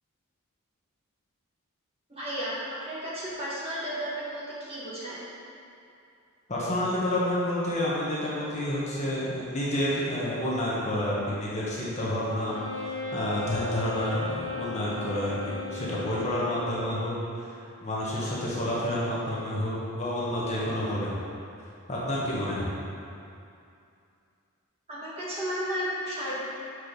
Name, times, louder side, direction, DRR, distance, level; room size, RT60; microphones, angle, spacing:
voice 1, 2.1-5.2 24.9-26.4, equal, 25° right, -8 dB, 1.6 m, -33 dB
voice 2, 6.5-12.6 12.8-17.1 17.8-21.2 21.9-22.7, left 1 dB, 30° left, -7 dB, 1.3 m, -29 dB
Wind instrument woodwind instrument, 12.5-17.1, left 3 dB, 65° right, 1.3 m, -36 dB
6.4 x 4.9 x 5.2 m, 2.5 s
head